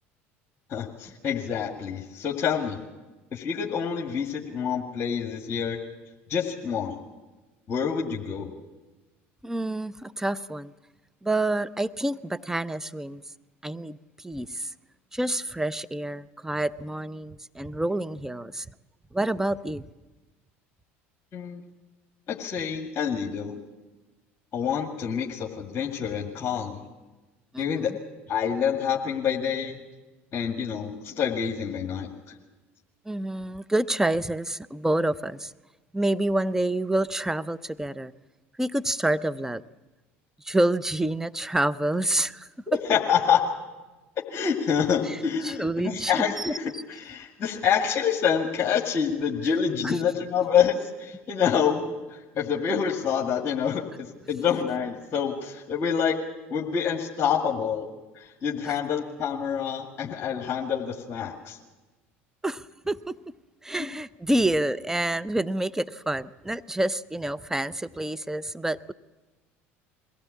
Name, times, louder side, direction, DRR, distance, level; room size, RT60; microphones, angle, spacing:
voice 1, 0.7-2.8 3.3-5.8 6.3-7.0 7.7-8.5 21.3-21.6 22.3-23.6 24.5-26.8 27.6-27.9 28.3-29.8 30.3-32.4 42.7-43.4 44.3-51.8 52.1-56.2 56.5-57.9 58.1-61.6, left 7 dB, 40° left, 0 dB, 2.1 m, -27 dB
voice 2, 9.4-10.7 11.2-13.2 13.6-14.7 15.1-18.7 19.1-19.8 27.5-28.0 33.1-35.5 35.9-38.1 38.6-39.6 40.4-42.8 45.1-45.2 45.4-46.1 46.4-46.8 49.8-50.0 58.6-58.8 62.4-63.2 63.6-68.9, right 1 dB, 5° right, 15 dB, 0.7 m, -28 dB
22.5 x 16.5 x 8.5 m, 1.2 s
hypercardioid pair, 75°, 7 cm